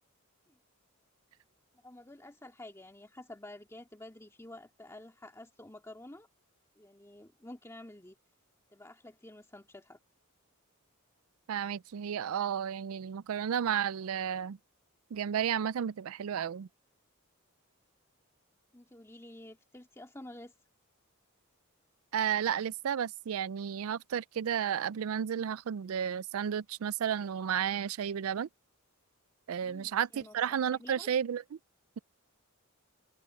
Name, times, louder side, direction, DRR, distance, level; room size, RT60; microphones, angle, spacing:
voice 1, 1.8-6.3 6.8-8.2 8.7-10.0 18.7-20.5 29.6-30.3 30.8-31.1, left 1 dB, 15° left, 2.1 m, -50 dB
voice 2, 11.5-14.6 15.1-16.7 22.1-28.5 29.5-31.6, right 8 dB, 75° right, 0.4 m, -32 dB
head